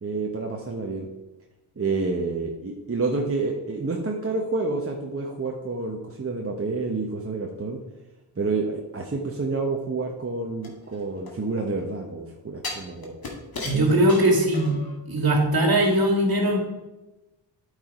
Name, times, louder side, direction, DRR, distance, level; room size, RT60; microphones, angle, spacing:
voice 1, 0.0-1.1 1.8-7.8 8.4-13.1 13.7-13.9, right 3 dB, 30° right, 1 dB, 1.1 m, -29 dB
sound 1, 10.6-11.8 12.6-15.0 15.4-15.5, left 2 dB, 50° left, 2.0 m, -37 dB
voice 2, 13.6-14.7 15.1-16.6, right 1 dB, 50° right, 2 dB, 2.3 m, -20 dB
8.7 x 5.0 x 4.3 m, 1.0 s
cardioid pair, 50°, 47 cm